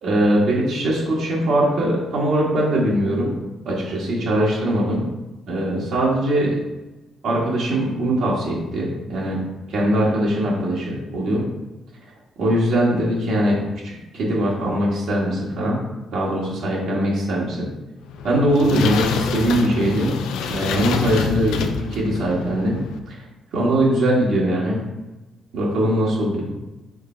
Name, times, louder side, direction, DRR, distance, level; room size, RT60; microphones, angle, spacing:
voice 1, 0.0-3.3 3.6-5.0 5.5-6.5 7.2-9.4 9.7-11.5 12.4-15.8 16.1-17.7 18.2-20.1 20.5-22.8 23.1-23.2 23.5-24.8 25.5-26.5, right 1 dB, 75° right, -5 dB, 1.4 m, -21 dB
sound 1, 18.0-23.0, left 5 dB, 85° left, 0.3 m, -26 dB
4.9 x 2.2 x 4.3 m, 1.1 s
cardioid pair, 90°, 0 cm